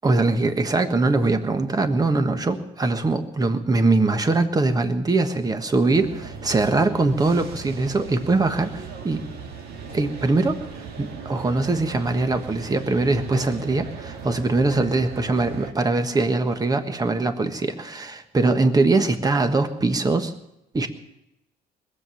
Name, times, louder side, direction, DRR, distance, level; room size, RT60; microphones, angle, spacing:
voice 1, 0.0-9.2 9.9-10.6 11.0-20.3 20.7-20.9, right 3 dB, 20° right, 8 dB, 1.4 m, -22 dB
sound 1, 5.9-15.7, right 5 dB, 70° right, 2.0 m, -38 dB
20.5 x 7.8 x 8.4 m, 0.89 s
cardioid pair, 110°, 17 cm